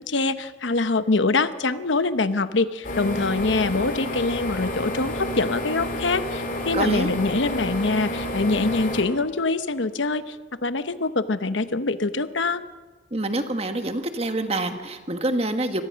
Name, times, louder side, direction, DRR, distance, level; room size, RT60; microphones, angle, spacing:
voice 1, 0.0-10.4 10.6-12.6, left 3 dB, 80° left, 12 dB, 1.0 m, -24 dB
sound 1, 2.8-9.0, left 1 dB, 45° left, 3.4 m, -30 dB
voice 2, 6.7-7.1 13.1-15.8, right 2 dB, 30° right, 7 dB, 1.4 m, -26 dB
25.0 x 18.0 x 6.4 m, 1.4 s
head